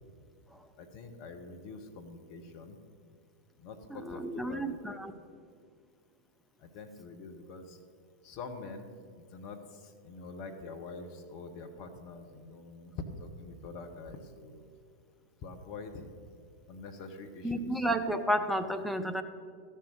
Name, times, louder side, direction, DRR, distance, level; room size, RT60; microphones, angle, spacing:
voice 1, 0.8-2.8 3.6-5.0 6.6-7.8 8.2-8.9 9.2-14.7 15.4-16.1 16.7-17.7, left 3 dB, 45° left, 5 dB, 1.1 m, -45 dB
voice 2, 3.9-5.1 17.4-19.2, right 1 dB, ahead, 7 dB, 0.7 m, -31 dB
13.5 x 5.6 x 6.5 m, 2.2 s
figure-of-eight pair, 90°, 0 cm